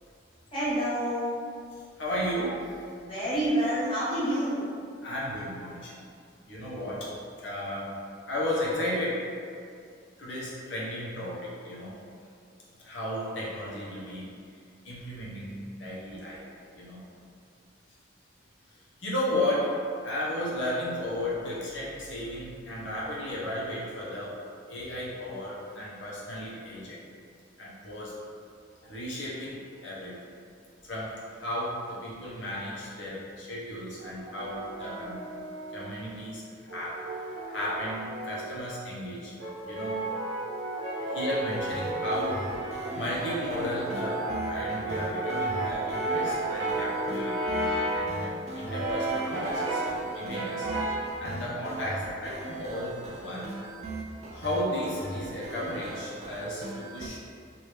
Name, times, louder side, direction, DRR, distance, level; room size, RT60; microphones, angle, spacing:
voice 1, 0.5-1.3 3.0-4.7, right 1 dB, 30° left, -12 dB, 1.4 m, -28 dB
voice 2, 2.0-2.7 5.0-6.0 6.5-7.1 7.4-8.0 8.3-9.3 10.2-12.0 12.8-14.3 14.8-16.4 16.7-17.0 19.0-24.4 24.7-27.0 27.6-28.1 28.8-30.3 30.8-35.2 35.7-37.0 37.5-39.3 39.7-40.1 41.1-42.5 42.9-49.8 50.1-50.7 51.2-53.5 54.3-57.2, left 1 dB, 75° left, -6 dB, 0.9 m, -34 dB
Brass instrument, 34.0-35.9 36.7-38.7 39.4-48.1 48.7-50.0 50.3-51.2, right 2 dB, 85° right, 0.7 m, -32 dB
sound 1, 41.5-57.1, right 2 dB, 35° right, 0.3 m, -40 dB
3.0 x 2.6 x 3.3 m, 2.3 s
head